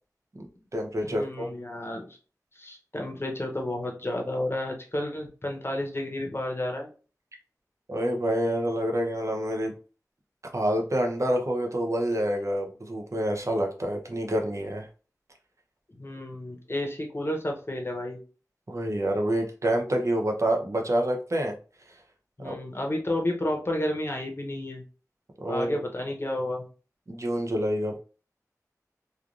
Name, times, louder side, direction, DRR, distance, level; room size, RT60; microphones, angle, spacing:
voice 1, 0.4-1.5 7.9-9.7 10.5-14.9 18.7-21.6 22.4-22.6 25.4-25.8 27.1-28.0, right 1 dB, 50° right, 2 dB, 0.7 m, -27 dB
voice 2, 1.0-2.1 2.6-6.9 15.9-18.2 22.4-24.8 25.5-26.6, left 1 dB, 40° left, 1 dB, 0.8 m, -31 dB
3.1 x 2.4 x 2.5 m, 0.36 s
wide cardioid pair, 60°, 6 cm